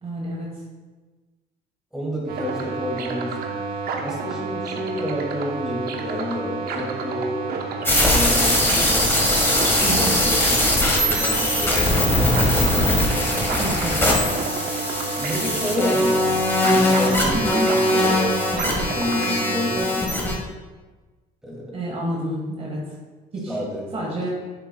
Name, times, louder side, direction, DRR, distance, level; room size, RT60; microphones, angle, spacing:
voice 1, 0.0-0.5 9.8-10.2 13.6-14.2 17.3-17.7 21.7-22.8 23.3-23.6 23.9-24.3, right 1 dB, 35° right, -2 dB, 1.5 m, -28 dB
voice 2, 1.9-3.6 4.0-7.4 7.9-8.8 9.7-12.7 15.1-18.3 18.6-20.4 21.4-21.8 23.5-23.9, left 1 dB, 5° right, -4 dB, 2.4 m, -30 dB
sound 1, 2.3-19.8, right 4 dB, 65° right, 0.9 m, -30 dB
sound 2, 7.8-20.3, left 1 dB, 15° left, 1.9 m, -21 dB
9.8 x 7.6 x 2.3 m, 1.3 s
cardioid pair, 110°, 17 cm